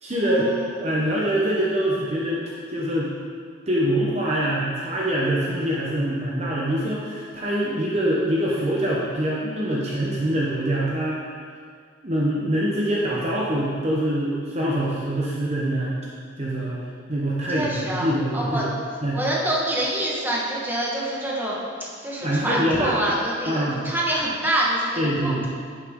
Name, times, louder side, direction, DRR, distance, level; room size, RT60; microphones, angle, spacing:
voice 1, 0.0-0.5 0.8-2.4 2.7-3.1 3.7-11.2 12.0-16.0 16.4-16.8 17.1-18.7 19.0-19.2 22.2-23.0 23.5-23.8 25.0-25.5, right 1 dB, 35° right, -5 dB, 1.0 m, -24 dB
voice 2, 17.5-18.1 18.3-18.7 19.1-21.6 22.0-24.9 25.2-25.5, right 1 dB, 10° right, -5 dB, 1.4 m, -26 dB
11.0 x 6.7 x 3.7 m, 2.1 s
head